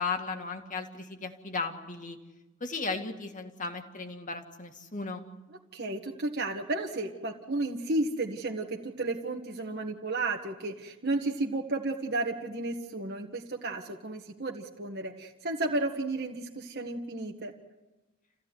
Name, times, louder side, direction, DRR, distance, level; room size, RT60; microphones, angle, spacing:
voice 1, 0.0-2.2 2.6-5.2, left 4 dB, 35° left, 5 dB, 2.2 m, -35 dB
voice 2, 5.7-17.5, right 2 dB, 50° right, 1 dB, 1.7 m, -33 dB
28.0 x 16.5 x 9.5 m, 1.1 s
head